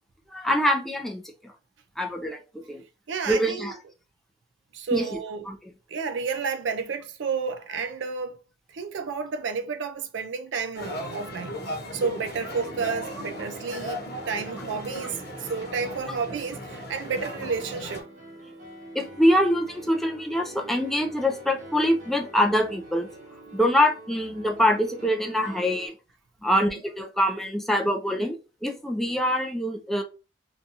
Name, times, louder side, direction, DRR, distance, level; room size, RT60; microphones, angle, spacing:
voice 1, 0.3-1.5 2.0-2.8 3.3-3.7 4.9-5.2 5.5-5.6 18.9-23.1 23.5-25.9 26.4-30.0, equal, ahead, 0.3 m, -24 dB
voice 2, 3.1-3.7 4.7-5.5 5.9-8.4 8.7-11.6 11.9-18.1 26.5-26.7, right 5 dB, 75° right, 0.4 m, -31 dB
sound 1, 10.7-18.0, equal, 60° left, 0.9 m, -37 dB
Piano, 12.2-25.9, right 1 dB, 45° right, 1.1 m, -46 dB
2.6 x 2.3 x 2.7 m
head